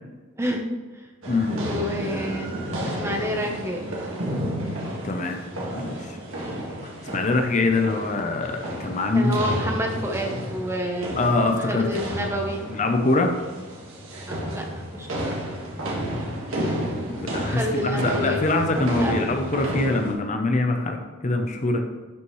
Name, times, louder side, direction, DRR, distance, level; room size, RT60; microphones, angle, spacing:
sound 1, 1.2-20.1, equal, 85° right, 1.9 m, -31 dB
voice 1, 1.6-2.6 3.0-3.8 9.1-11.1 11.7-12.6 14.3-14.7 14.9-15.4 17.4-19.2, equal, 15° right, 1 dB, 0.9 m, -29 dB
voice 2, 5.0-5.4 5.7-6.2 6.8-9.3 11.2-11.9 12.7-13.3 17.2-21.8, left 2 dB, 35° left, 4 dB, 0.7 m, -24 dB
11.0 x 5.7 x 3.2 m, 1.3 s
head